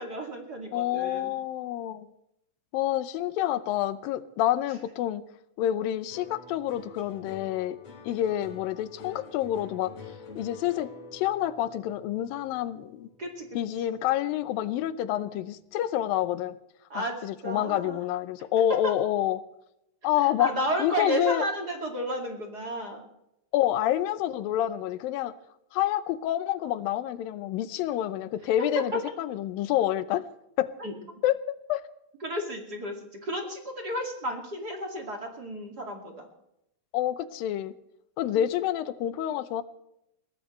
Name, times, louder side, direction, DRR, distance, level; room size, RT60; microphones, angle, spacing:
voice 1, 0.0-1.3 13.2-13.5 16.9-18.0 18.8-18.9 20.2-23.1 30.8-30.9 32.2-36.3 38.4-38.5, right 1 dB, 30° right, 2 dB, 2.4 m, -32 dB
voice 2, 0.7-2.1 2.7-5.2 5.6-7.8 8.1-9.9 10.4-13.1 13.5-16.6 16.9-19.4 20.0-20.5 20.8-21.5 23.5-25.3 25.7-30.3 30.6-30.7 31.2-31.8 36.9-37.8 38.2-39.6, left 12 dB, 90° left, 14 dB, 2.5 m, -28 dB
sound 1, 6.1-14.6 14.9-15.5, left 4 dB, 55° left, 4.1 m, -48 dB
22.0 x 17.0 x 3.2 m, 0.82 s
omnidirectional pair, 4.0 m